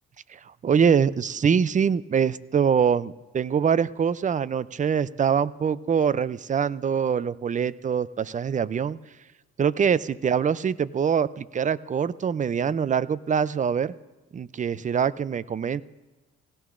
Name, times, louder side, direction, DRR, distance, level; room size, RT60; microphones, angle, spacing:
voice 1, 0.3-9.0 9.6-13.9 14.3-15.8, right 7 dB, 25° right, 18 dB, 0.4 m, -24 dB
18.5 x 17.0 x 2.5 m, 1.2 s
cardioid pair, 90°, 30 cm